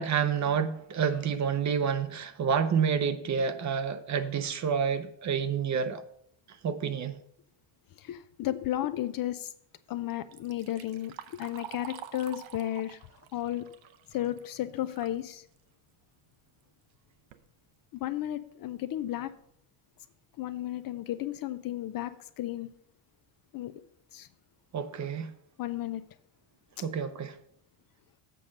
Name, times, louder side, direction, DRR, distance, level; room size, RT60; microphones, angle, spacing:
voice 1, 0.0-6.0 6.6-7.2 24.7-25.3 26.8-27.4, right 7 dB, 35° right, 0.7 m, -29 dB
voice 2, 8.0-9.5 9.9-13.0 13.3-13.7 14.1-15.4 17.9-19.3 20.4-22.7 23.5-23.7 24.1-24.3 25.6-26.0, left 13 dB, 45° left, 0.5 m, -33 dB
Liquid, 10.1-15.2 15.6-15.7 16.6-16.7 17.1-17.5 18.1-18.2 18.7-18.8 19.2-19.4, right 12 dB, 65° right, 0.8 m, -47 dB
7.7 x 5.2 x 6.4 m
cardioid pair, 125°, 50 cm